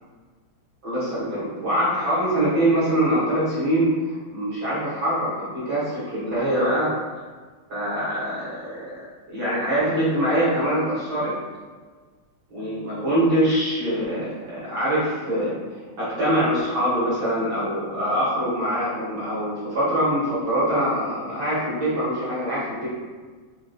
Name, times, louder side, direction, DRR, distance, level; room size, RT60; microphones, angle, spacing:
voice 1, 0.8-3.9 4.3-7.0 7.7-11.3 12.5-15.5 16.0-22.9, right 1 dB, 45° right, -10 dB, 1.6 m, -24 dB
4.9 x 2.8 x 2.6 m, 1.4 s
omnidirectional pair, 3.7 m